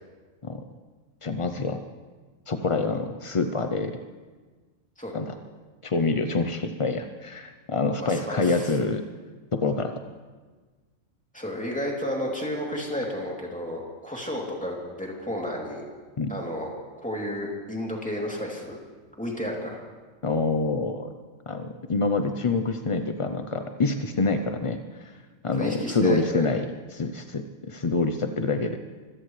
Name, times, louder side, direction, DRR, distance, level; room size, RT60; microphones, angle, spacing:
voice 1, 1.2-1.8 2.5-3.9 5.1-5.3 5.8-9.0 9.5-10.0 16.2-16.3 20.2-21.1 21.5-24.8 25.0-25.1 25.4-26.7 26.9-28.8, left 3 dB, 50° left, 7 dB, 0.3 m, -26 dB
voice 2, 8.0-8.8 11.3-15.8 16.3-16.7 17.0-18.8 19.2-19.8 25.6-26.5, equal, 5° left, -3 dB, 2.8 m, -32 dB
25.0 x 16.5 x 3.2 m, 1.4 s
omnidirectional pair, 1.4 m